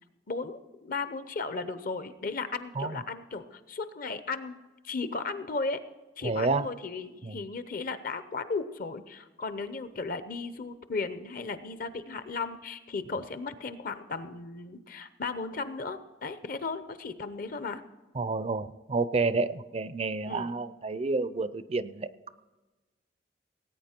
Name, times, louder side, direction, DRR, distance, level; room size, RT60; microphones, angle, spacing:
voice 1, 0.3-4.6 4.8-5.8 6.2-17.8 20.3-20.5, left 4 dB, 50° left, 12 dB, 0.7 m, -35 dB
voice 2, 6.2-6.7 7.3-7.4 18.2-22.1, right 3 dB, 35° right, 14 dB, 0.4 m, -29 dB
18.5 x 9.0 x 4.4 m, 1.2 s
head